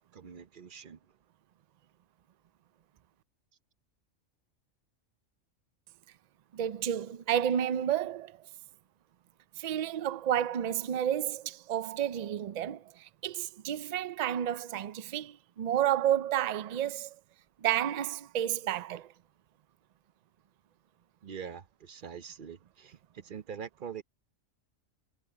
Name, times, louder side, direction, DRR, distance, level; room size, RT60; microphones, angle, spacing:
voice 1, 0.1-1.0 21.2-24.0, right 7 dB, 45° right, 0.8 m, -44 dB
voice 2, 6.5-8.5 9.6-17.2 17.6-19.1, right 10 dB, 85° right, 0.3 m, -31 dB
omnidirectional pair, 1.3 m